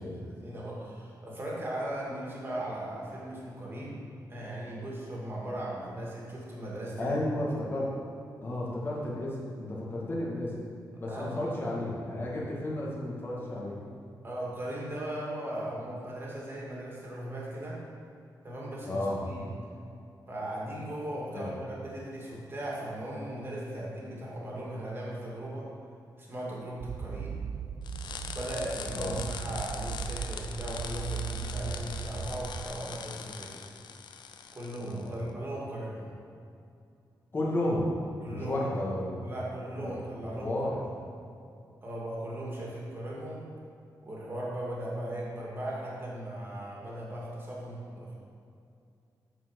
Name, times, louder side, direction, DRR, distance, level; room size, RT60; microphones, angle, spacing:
voice 1, 0.0-4.0 4.3-7.2 11.1-11.4 14.2-17.8 18.4-19.5 20.3-25.7 26.2-27.3 28.3-33.6 34.5-36.1 38.2-38.7 39.2-40.8 41.8-43.4 44.0-48.1, right 1 dB, 30° right, -5 dB, 2.3 m, -38 dB
voice 2, 7.0-7.9 8.4-10.5 11.0-13.8 18.9-19.3 21.3-21.5 28.9-29.3 34.8-35.2 37.3-37.9 38.3-39.2 39.8-39.9 40.2-40.8 42.6-42.7, left 1 dB, 30° left, -5 dB, 2.0 m, -32 dB
sound 1, 26.8-32.7, right 7 dB, 60° right, 0.4 m, -38 dB
sound 2, 27.8-35.1, left 7 dB, 90° left, 0.5 m, -42 dB
9.0 x 4.7 x 6.4 m, 2.5 s
wide cardioid pair, 130°, 7 cm